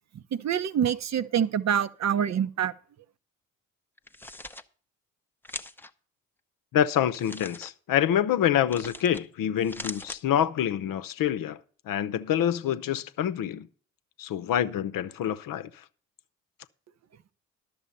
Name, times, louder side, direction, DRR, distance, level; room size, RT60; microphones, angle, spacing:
voice 1, 0.4-2.7, right 9 dB, 40° right, 0.7 m, -26 dB
sound 1, 4.0-4.6 5.4-5.9 7.1-7.7 8.7-9.2 9.6-10.2, left 2 dB, 5° left, 0.7 m, -40 dB
voice 2, 6.7-11.6 11.9-13.7 14.2-15.7, left 10 dB, 55° left, 0.8 m, -26 dB
12.0 x 6.8 x 5.4 m
hypercardioid pair, 45°, 41 cm